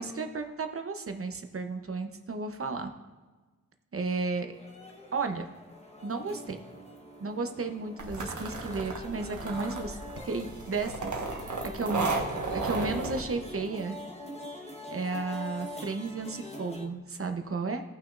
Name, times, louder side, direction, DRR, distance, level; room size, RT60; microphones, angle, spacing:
voice 1, 0.0-2.9 3.9-4.5 5.1-5.5 6.0-6.6 7.2-10.0 10.2-11.2 11.7-14.0 14.9-17.8, right 3 dB, 45° right, 6 dB, 0.8 m, -33 dB
sound 1, 4.5-16.9, left 1 dB, 20° left, 1.1 m, -44 dB
sound 2, 8.0-13.2, right 3 dB, 75° right, 1.3 m, -34 dB
16.5 x 6.1 x 2.5 m, 1.3 s
wide cardioid pair, 95°, 30 cm